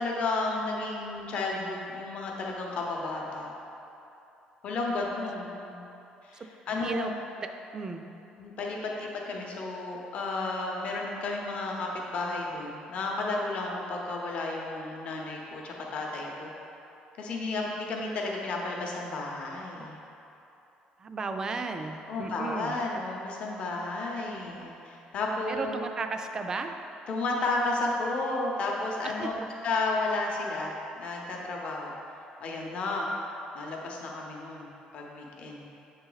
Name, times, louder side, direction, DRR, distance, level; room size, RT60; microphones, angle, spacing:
voice 1, 0.0-3.5 4.6-5.9 6.2-7.1 8.4-16.5 17.2-20.0 22.0-25.8 27.1-29.4 29.6-31.9 32.4-33.1 33.5-35.7, left 2 dB, 45° left, -1 dB, 0.8 m, -32 dB
voice 2, 6.3-7.1 7.7-8.0 21.0-22.7 25.5-26.7 29.2-29.3, right 4 dB, 25° right, 6 dB, 0.3 m, -34 dB
7.5 x 4.0 x 3.9 m, 2.9 s
cardioid pair, 165°, 3 cm